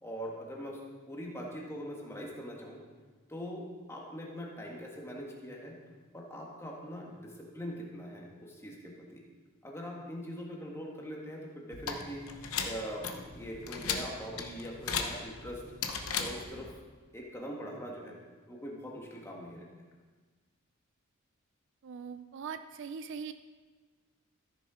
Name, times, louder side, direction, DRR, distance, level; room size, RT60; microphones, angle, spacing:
voice 1, 0.0-0.8 1.1-2.8 3.3-5.8 6.1-9.2 9.6-12.2 12.6-15.6 16.2-16.7 17.1-18.2 18.5-19.7, equal, 10° left, -2 dB, 1.7 m, -42 dB
sound 1, 11.7-16.7, left 6 dB, 75° left, 0.9 m, -37 dB
voice 2, 21.8-23.3, right 6 dB, 60° right, 10 dB, 0.4 m, -41 dB
13.5 x 6.5 x 5.0 m, 1.4 s
head